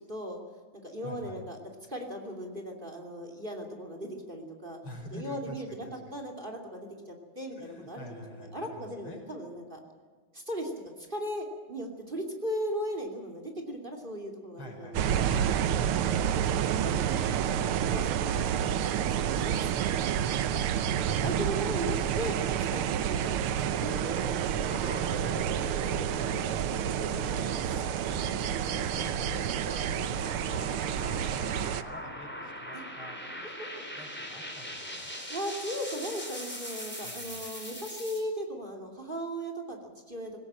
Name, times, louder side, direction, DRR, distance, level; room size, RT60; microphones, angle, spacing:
voice 1, 0.1-0.4 0.8-4.8 5.1-8.2 8.5-9.8 10.3-10.7 11.0-16.3 16.8-20.5 21.1-24.5 26.9-27.4 32.7-32.8 33.4-34.0 35.3-40.4, equal, 25° right, 4 dB, 2.9 m, -38 dB
voice 2, 1.0-1.4 4.8-6.1 7.5-9.2 14.6-15.9 20.5-21.2 24.7-26.8 27.1-33.2 33.9-35.1 37.0-37.4, left 1 dB, 75° left, 2 dB, 6.3 m, -47 dB
sound 1, 14.9-31.8, right 9 dB, 85° right, 1.8 m, -29 dB
sound 2, 23.7-38.2, equal, 5° left, 4.0 m, -41 dB
20.5 x 18.5 x 8.8 m, 1.5 s
omnidirectional pair, 2.3 m